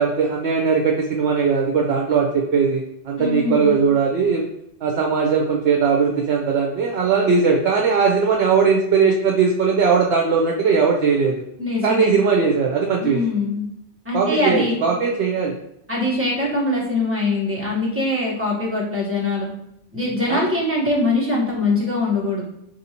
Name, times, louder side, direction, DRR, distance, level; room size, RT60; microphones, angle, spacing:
voice 1, 0.0-4.5 4.8-11.4 11.8-13.2 14.1-15.5 20.3-20.4, right 5 dB, 75° right, 0 dB, 0.8 m, -19 dB
voice 2, 3.2-3.8 11.6-12.1 13.0-13.6 14.0-14.8 15.9-19.5 19.9-22.4, left 2 dB, 15° right, -4 dB, 1.0 m, -22 dB
4.7 x 2.6 x 2.8 m, 0.80 s
omnidirectional pair, 1.1 m